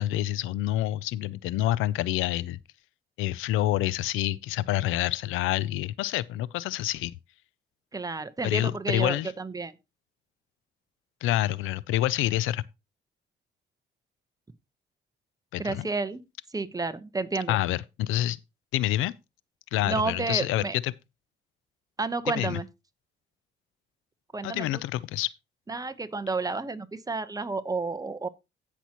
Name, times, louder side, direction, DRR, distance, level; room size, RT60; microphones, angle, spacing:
voice 1, 0.0-2.6 3.2-7.1 8.4-9.3 11.2-12.6 15.5-15.9 17.5-18.4 18.7-19.1 19.7-20.9 22.4-22.6 24.4-25.3, left 14 dB, 90° left, 0.4 m, -27 dB
voice 2, 7.9-9.7 15.6-16.2 16.5-17.6 19.8-20.8 22.0-22.7 24.3-24.8 25.7-28.3, right 3 dB, 20° right, 0.9 m, -31 dB
16.5 x 5.9 x 2.9 m
cardioid pair, 90°, 20 cm